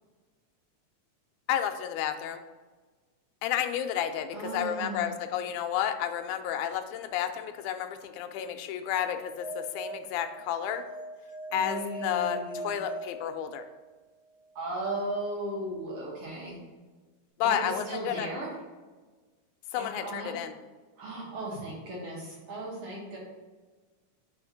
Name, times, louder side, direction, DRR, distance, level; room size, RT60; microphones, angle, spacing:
voice 1, 1.5-2.4 3.4-10.8 11.5-13.7 17.4-18.3 19.7-20.6, left 9 dB, 80° left, 7 dB, 1.9 m, -31 dB
voice 2, 4.3-5.1 11.5-12.7 14.5-16.6 17.4-18.5 19.8-20.3 21.0-23.2, right 1 dB, 60° right, -5 dB, 1.8 m, -36 dB
sound 1, 9.1-13.9, right 1 dB, 40° left, 1.4 m, -40 dB
4.4 x 4.3 x 5.6 m, 1.3 s
omnidirectional pair, 3.6 m